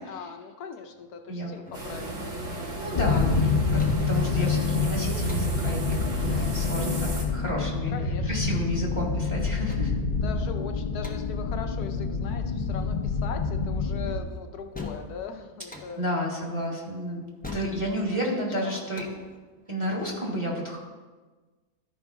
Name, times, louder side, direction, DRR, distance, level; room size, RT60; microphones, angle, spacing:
voice 1, 0.0-2.4 6.3-6.6 7.9-8.5 10.2-16.0 17.8-18.2 18.6-18.9, left 7 dB, 75° left, 5 dB, 1.2 m, -40 dB
sound 1, 0.9-20.2, left 4 dB, 10° left, 0.4 m, -45 dB
sound 2, 1.7-7.2, right 1 dB, 55° right, 1.6 m, -34 dB
voice 2, 2.8-7.9 8.3-9.9 16.0-17.2 17.5-19.0 19.7-20.8, equal, 20° right, -3 dB, 1.6 m, -31 dB
sound 3, 3.0-14.2, left 4 dB, 40° left, 0.7 m, -27 dB
13.0 x 5.3 x 3.5 m, 1.3 s
omnidirectional pair, 1.7 m